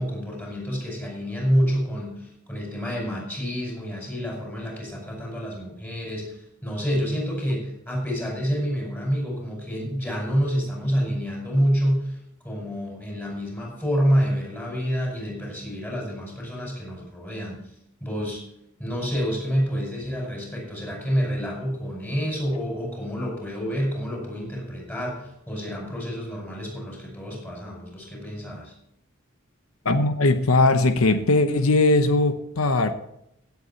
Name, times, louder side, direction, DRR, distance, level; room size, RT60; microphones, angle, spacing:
voice 1, 0.0-12.2 12.4-17.6 18.0-18.4 18.8-28.7, equal, 10° left, -1 dB, 5.3 m, -28 dB
voice 2, 29.8-32.9, left 2 dB, 90° left, 10 dB, 0.9 m, -20 dB
16.5 x 8.3 x 4.2 m, 0.79 s
head